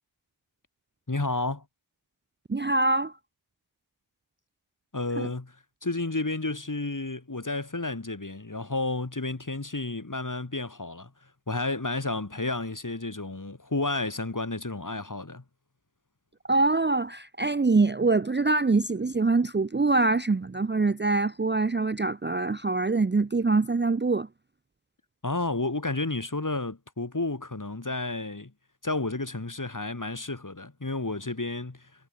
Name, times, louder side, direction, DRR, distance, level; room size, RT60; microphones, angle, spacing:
voice 1, 1.1-1.6 4.9-5.6 5.8-11.1 11.5-15.4 25.2-28.5 28.8-31.9, left 2 dB, 40° left, 3.9 m, -31 dB
voice 2, 2.5-3.2 5.2-5.3 16.5-24.3, right 3 dB, 20° right, 0.6 m, -24 dB
wide cardioid pair, 50°, 49 cm